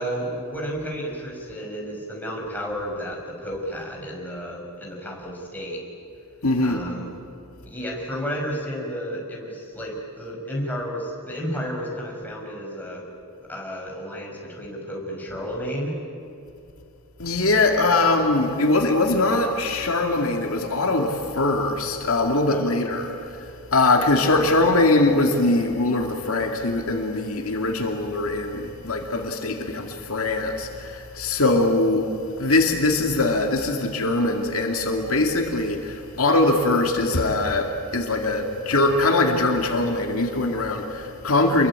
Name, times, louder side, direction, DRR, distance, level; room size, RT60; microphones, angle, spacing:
voice 1, 0.0-5.8 6.6-7.1 7.7-13.1 13.5-16.0 17.9-18.0 22.5-22.7, equal, 10° left, -1 dB, 5.8 m, -32 dB
voice 2, 6.4-6.9 17.2-32.1 32.4-41.7, left 2 dB, 70° left, 3 dB, 2.3 m, -22 dB
28.0 x 22.5 x 8.8 m, 2.7 s
head